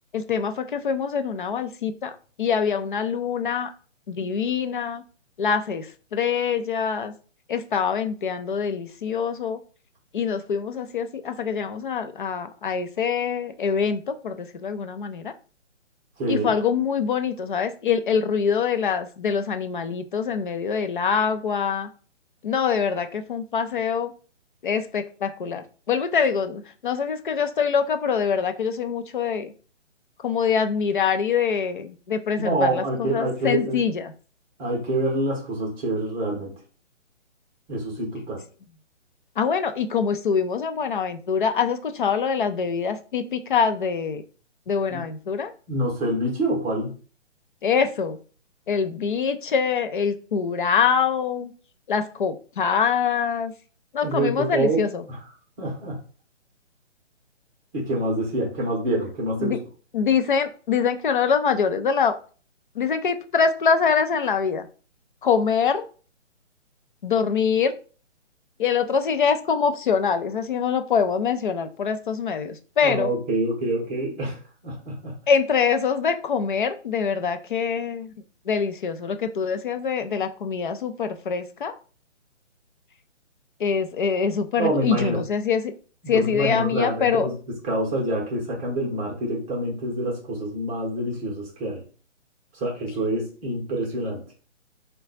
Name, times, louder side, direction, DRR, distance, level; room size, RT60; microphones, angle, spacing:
voice 1, 0.1-2.1 2.4-3.7 4.1-5.0 5.4-7.1 7.5-9.6 10.1-15.3 16.3-21.9 22.4-24.1 24.6-29.5 30.2-34.1 39.4-44.2 44.7-45.5 47.6-48.2 48.7-51.5 51.9-53.5 53.9-55.0 59.4-59.6 59.9-62.1 62.8-64.7 65.2-65.8 67.0-67.7 68.6-73.1 75.3-78.1 78.5-81.7 83.6-85.7 86.1-87.3, left 6 dB, 45° left, 8 dB, 0.5 m, -24 dB
voice 2, 16.2-16.5 32.4-33.8 34.6-36.5 37.7-38.4 44.9-45.0 45.7-46.9 54.0-55.2 55.6-56.0 57.7-59.6 72.8-74.4 74.6-75.1 84.6-85.2 86.0-91.8 92.5-94.2, right 1 dB, 10° right, -2 dB, 0.7 m, -26 dB
3.8 x 2.2 x 3.9 m, 0.39 s
figure-of-eight pair, 145°, 37 cm